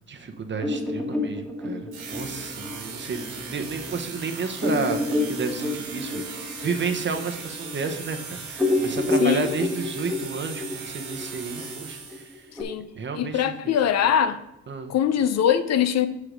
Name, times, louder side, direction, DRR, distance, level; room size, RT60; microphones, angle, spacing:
voice 1, 0.1-12.3 13.0-13.8 14.7-14.9, right 4 dB, 40° right, 0.9 m, -32 dB
sound 1, 0.6-3.7 4.1-4.2 4.6-8.2 8.5-12.6, left 2 dB, 5° left, 1.3 m, -28 dB
sound 2, 1.9-12.5, right 5 dB, 80° right, 1.9 m, -38 dB
voice 2, 9.2-9.6 12.6-12.9 13.1-14.4 14.9-16.1, left 9 dB, 60° left, 0.6 m, -22 dB
5.9 x 4.9 x 5.1 m
cardioid pair, 90°, 30 cm